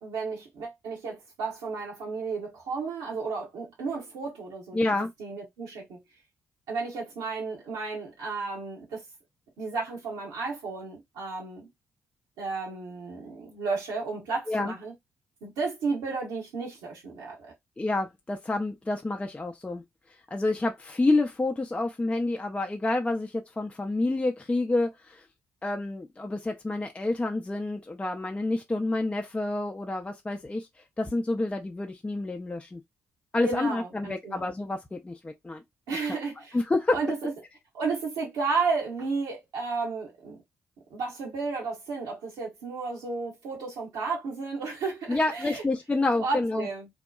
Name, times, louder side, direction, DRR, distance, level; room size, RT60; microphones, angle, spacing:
voice 1, 0.0-4.8 5.2-6.0 6.7-9.0 9.6-11.7 12.4-14.9 15.4-17.5 33.4-34.4 35.9-36.6 36.9-37.3 37.7-40.4 40.9-45.6 46.1-46.9, right 4 dB, 70° right, 1.0 m, -33 dB
voice 2, 4.7-5.1 14.5-14.7 17.8-19.8 20.3-25.2 25.6-30.7 31.0-32.8 33.3-35.6 36.1-36.2 36.5-37.0 45.1-46.7, left 2 dB, 15° left, 0.5 m, -28 dB
2.8 x 2.2 x 2.3 m
hypercardioid pair, 40°, 7 cm